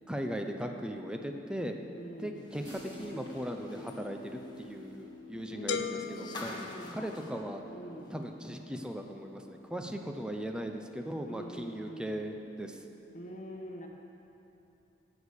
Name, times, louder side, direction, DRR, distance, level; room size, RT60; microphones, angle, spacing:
voice 1, 0.1-1.8 2.2-6.6 6.9-7.6 8.1-12.8, equal, 5° right, 4 dB, 0.8 m, -38 dB
voice 2, 2.0-2.6 5.5-7.2 7.7-8.2 11.2-12.2 13.1-13.9, equal, 40° left, 0 dB, 1.5 m, -45 dB
sound 1, 2.3-8.4 8.7-8.8 10.2-10.3, left 2 dB, 25° left, 1.5 m, -49 dB
sound 2, 2.6-12.3, left 3 dB, 60° right, 2.2 m, -51 dB
sound 3, 5.7-7.6, left 6 dB, 70° left, 0.6 m, -38 dB
18.0 x 7.3 x 6.5 m, 2.9 s
head